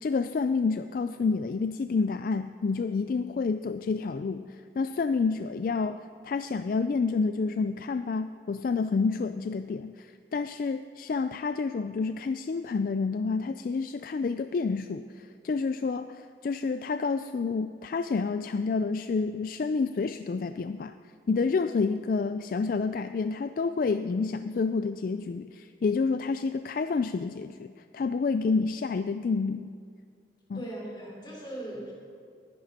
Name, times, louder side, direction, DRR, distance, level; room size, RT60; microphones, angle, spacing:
voice 1, 0.0-21.0 21.3-29.7 30.5-30.6, left 4 dB, 50° left, 10 dB, 0.3 m, -29 dB
voice 2, 30.5-31.9, right 1 dB, 25° left, -4 dB, 3.6 m, -39 dB
19.0 x 11.0 x 4.2 m, 2.2 s
head